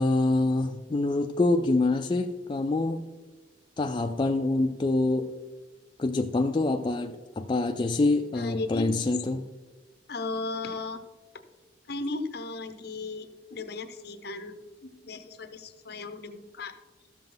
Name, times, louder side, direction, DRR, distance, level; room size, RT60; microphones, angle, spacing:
voice 1, 0.0-3.1 3.8-5.3 6.0-9.4, left 2 dB, 25° left, 5 dB, 0.3 m, -26 dB
voice 2, 8.3-8.9 10.1-11.0 11.3-11.4 11.9-16.7, left 3 dB, 60° left, 9 dB, 0.8 m, -36 dB
12.5 x 7.3 x 3.8 m, 1.3 s
head